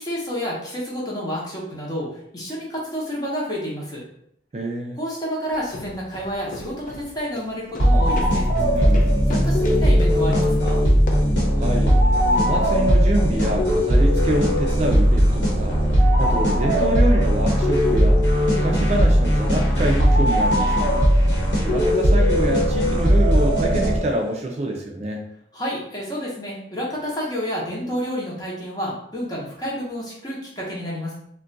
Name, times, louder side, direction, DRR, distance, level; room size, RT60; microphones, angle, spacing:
voice 1, 0.0-4.0 5.0-8.5 9.3-10.8 25.5-31.1, equal, 20° left, -4 dB, 0.8 m, -29 dB
voice 2, 4.5-5.0 8.7-9.2 11.5-12.0 12.4-18.2 18.5-20.9 21.6-25.2, right 1 dB, 35° right, 1 dB, 0.3 m, -26 dB
sound 1, 5.5-11.4, left 2 dB, 45° left, 0.4 m, -37 dB
sound 2, 7.8-24.3, equal, 90° left, 1.0 m, -18 dB
2.4 x 2.2 x 3.8 m, 0.71 s
head